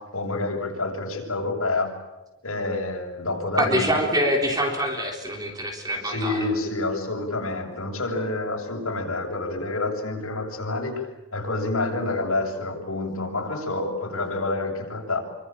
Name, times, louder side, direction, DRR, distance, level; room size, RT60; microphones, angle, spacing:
voice 1, 0.1-1.9 2.4-4.0 6.0-11.1 11.3-15.2, left 2 dB, 80° left, 0 dB, 7.3 m, -28 dB
voice 2, 3.5-6.5, equal, 15° right, 2 dB, 3.8 m, -25 dB
26.5 x 25.0 x 9.0 m, 1.0 s
head